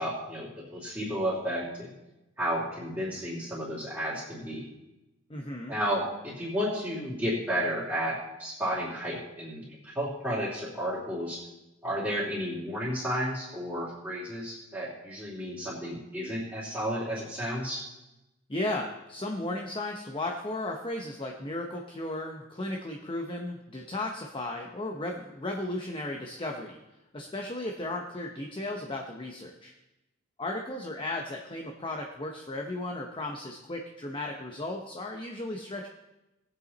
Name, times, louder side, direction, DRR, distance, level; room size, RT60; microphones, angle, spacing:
voice 1, 0.0-1.9 2.4-4.7 5.7-11.4 11.8-17.8, equal, 10° right, -9 dB, 2.9 m, -32 dB
voice 2, 5.3-5.8 18.5-26.8 27.1-29.7 30.4-35.9, left 2 dB, 25° left, 2 dB, 0.9 m, -35 dB
18.5 x 8.1 x 4.1 m, 0.97 s
head